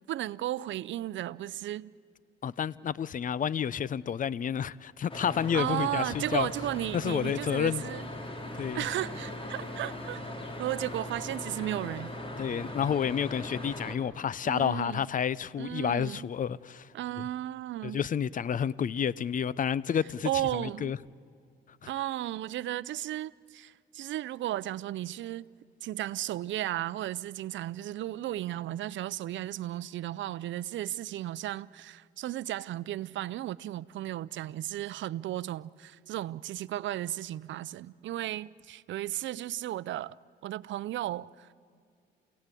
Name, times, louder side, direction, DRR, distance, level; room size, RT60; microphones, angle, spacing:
voice 1, 0.1-1.9 5.5-8.1 8.7-10.2 10.6-12.1 14.4-15.0 15.6-16.3 16.9-18.0 20.2-21.0 21.9-25.5 25.8-40.2 40.4-41.5, right 13 dB, 70° right, 0.6 m, -34 dB
voice 2, 2.4-6.5 6.9-7.8 8.6-8.8 12.4-16.9 17.2-17.3 17.8-21.0 21.8-21.9, left 8 dB, 40° left, 0.6 m, -30 dB
sound 1, 5.1-14.0, left 1 dB, 25° left, 3.2 m, -39 dB
28.5 x 17.5 x 8.4 m
cardioid pair, 90°, 20 cm